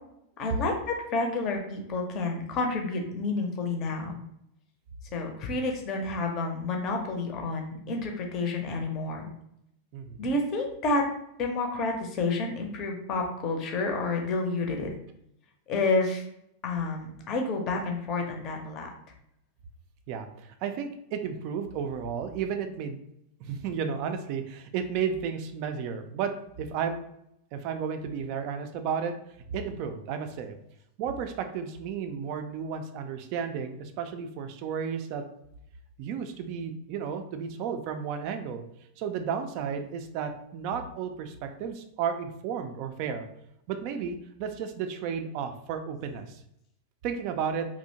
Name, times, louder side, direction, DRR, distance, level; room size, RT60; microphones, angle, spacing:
voice 1, 0.4-0.7 1.1-4.2 5.1-9.3 10.2-11.0 11.4-14.9 15.7-16.2 16.6-18.9, left 3 dB, 35° left, 2 dB, 0.6 m, -29 dB
voice 2, 9.9-10.3 20.1-23.0 23.4-27.0 27.5-29.1 29.5-30.6 31.0-35.2 36.0-38.6 39.0-43.3 43.7-46.4 47.0-47.7, right 7 dB, 45° right, 7 dB, 0.3 m, -33 dB
2.7 x 2.0 x 2.7 m, 0.77 s
figure-of-eight pair, 90°, 0 cm